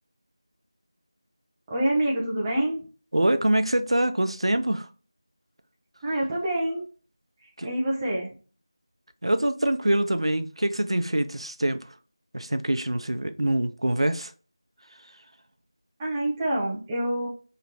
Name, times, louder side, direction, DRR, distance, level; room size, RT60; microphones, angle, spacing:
voice 1, 1.7-2.9 6.0-6.8 7.6-8.3 16.0-17.3, right 1 dB, 10° right, 0.4 m, -26 dB
voice 2, 3.1-4.9 7.6-7.7 9.2-11.8 12.3-14.3, right 1 dB, 85° right, 0.5 m, -24 dB
3.1 x 2.9 x 2.4 m
figure-of-eight pair, 170°, 3 cm